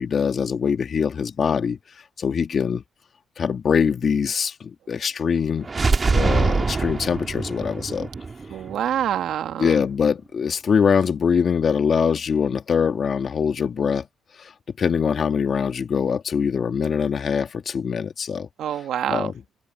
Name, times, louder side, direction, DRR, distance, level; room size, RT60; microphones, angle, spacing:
voice 1, 0.0-1.8 2.2-2.8 3.4-5.7 6.1-8.1 9.6-14.0 14.4-14.5 14.8-18.5 19.1-19.3, left 6 dB, 50° left, 2.0 m, -23 dB
sound 1, 5.6-9.5, right 4 dB, 30° right, 2.0 m, -24 dB
voice 2, 8.5-9.8 18.6-19.3, right 10 dB, 75° right, 1.5 m, -26 dB
cardioid pair, 90°, 0 cm